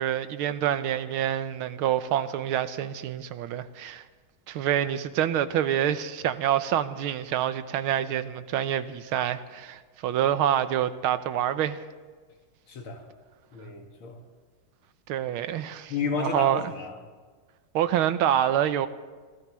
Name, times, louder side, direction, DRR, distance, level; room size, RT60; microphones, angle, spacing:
voice 1, 0.0-4.0 4.5-11.8 15.1-16.7 17.7-18.9, right 10 dB, 85° right, 1.6 m, -27 dB
voice 2, 12.7-13.0 13.5-14.2 15.9-16.9, left 5 dB, 80° left, 2.7 m, -32 dB
27.0 x 16.5 x 3.1 m
omnidirectional pair, 2.3 m